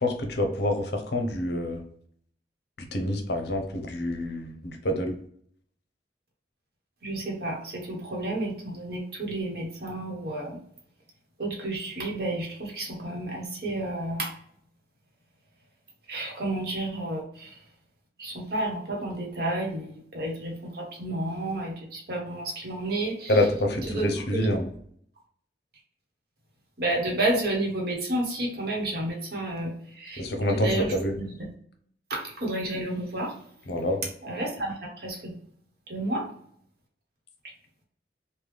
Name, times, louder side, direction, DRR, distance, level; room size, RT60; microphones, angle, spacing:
voice 1, 0.0-1.8 2.8-5.2 23.3-24.7 30.2-31.1 33.7-34.1, left 1 dB, 65° left, 4 dB, 0.6 m, -27 dB
voice 2, 7.0-10.6 11.4-14.3 16.1-17.6 18.2-23.4 23.9-24.6 26.8-30.2 30.5-31.5 32.1-33.4 34.2-35.4 35.9-36.3, right 1 dB, 60° right, -1 dB, 1.0 m, -31 dB
3.2 x 2.2 x 3.3 m, 0.62 s
head